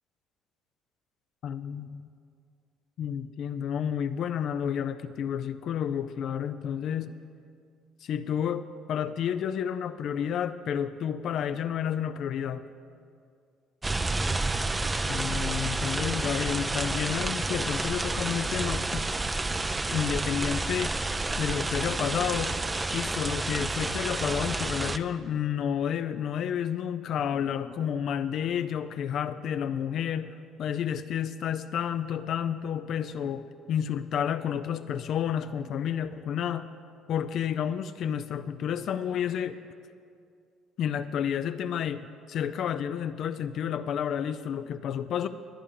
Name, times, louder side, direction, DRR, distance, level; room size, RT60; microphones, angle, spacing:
voice 1, 1.4-2.1 3.0-7.1 8.0-12.6 15.0-19.1 19.9-20.9 21.4-22.6 22.9-36.7 37.1-39.6 40.8-42.0 42.3-45.3, left 8 dB, 60° left, 10 dB, 0.4 m, -30 dB
sound 1, 13.8-25.0, right 2 dB, 20° right, 0.5 m, -30 dB
19.5 x 9.7 x 3.8 m, 2.3 s
supercardioid pair, 80°, 0 cm